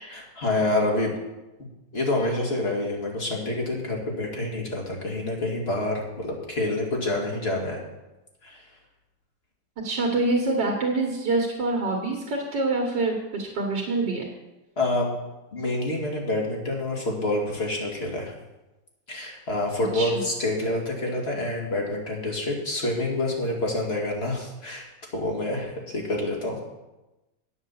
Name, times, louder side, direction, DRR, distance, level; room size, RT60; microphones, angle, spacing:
voice 1, 0.1-1.1 1.9-7.8 8.4-8.6 14.8-15.1 15.5-18.3 19.1-24.9 25.1-26.6, left 2 dB, 35° left, -1 dB, 2.5 m, -27 dB
voice 2, 9.8-14.2 19.9-20.3, right 2 dB, 85° right, 0 dB, 2.2 m, -26 dB
9.2 x 7.9 x 7.2 m, 1.0 s
omnidirectional pair, 1.9 m